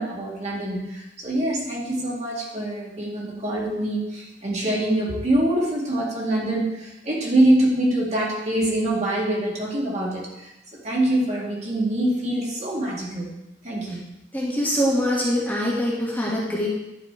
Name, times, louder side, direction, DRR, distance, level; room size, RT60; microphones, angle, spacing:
voice 1, 0.0-10.5 10.8-13.3 13.6-14.0, right 1 dB, 40° right, -4 dB, 1.9 m, -24 dB
voice 2, 14.3-16.7, equal, 10° left, -6 dB, 1.4 m, -23 dB
10.5 x 4.3 x 4.4 m, 0.96 s
head